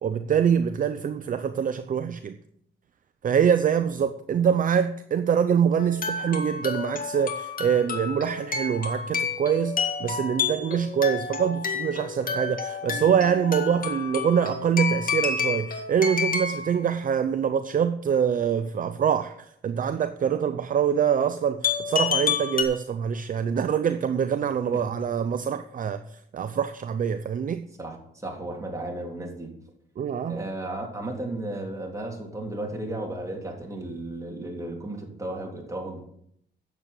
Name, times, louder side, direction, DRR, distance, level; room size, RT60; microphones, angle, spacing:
voice 1, 0.0-2.4 3.2-27.7 30.0-30.5, right 8 dB, 45° right, 0.6 m, -25 dB
sound 1, 5.8-16.7 21.6-22.6, left 5 dB, 45° left, 1.9 m, -29 dB
voice 2, 28.2-29.5 30.3-36.0, right 1 dB, 15° right, 3.2 m, -34 dB
9.7 x 7.6 x 6.6 m
cardioid pair, 90°, 20 cm